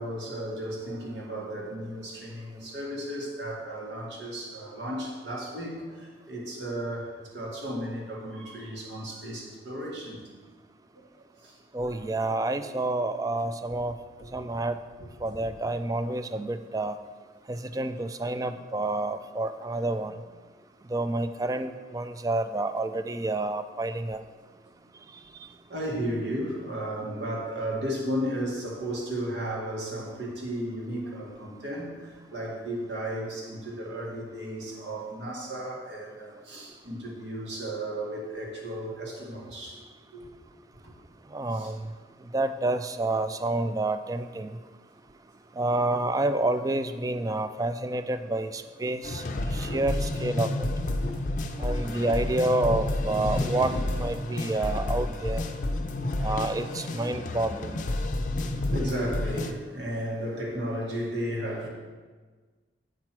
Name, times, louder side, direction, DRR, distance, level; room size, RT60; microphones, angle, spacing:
voice 1, 0.0-10.2 11.4-12.0 13.1-13.2 14.2-14.4 15.4-15.5 18.6-18.7 20.1-20.2 24.8-24.9 25.7-39.8 40.1-40.3 40.8-40.9 41.5-41.7 48.8-48.9 49.2-49.8 51.0-51.1 53.0-54.0 58.3-61.7, right 1 dB, 80° right, -2 dB, 1.9 m, -34 dB
voice 2, 11.7-13.9 14.3-14.8 15.2-16.9 17.5-20.2 20.9-24.2 41.3-41.8 42.3-44.5 45.6-49.2 49.5-50.7 51.6-53.7 54.0-55.4 56.2-57.8, right 2 dB, 20° right, 10 dB, 0.3 m, -29 dB
sound 1, 49.0-59.5, left 1 dB, 45° left, 0.5 m, -30 dB
7.9 x 4.6 x 5.9 m, 1.4 s
head